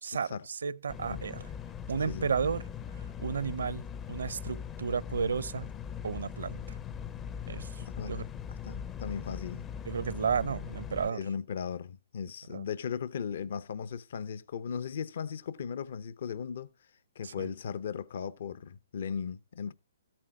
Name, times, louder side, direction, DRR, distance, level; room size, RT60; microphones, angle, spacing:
voice 1, 0.0-1.5 1.9-2.6 3.0-5.7 6.0-6.8 7.5-7.7 8.0-8.3 9.8-11.2 12.5-12.6 17.2-17.5, right 6 dB, 80° right, 0.7 m, -33 dB
sound 1, 0.9-11.1, left 8 dB, 15° left, 0.5 m, -40 dB
voice 2, 7.8-8.1 8.5-9.6 11.1-16.7 17.2-19.7, left 7 dB, 60° left, 0.7 m, -37 dB
13.5 x 8.8 x 3.6 m
hypercardioid pair, 150°, 0 cm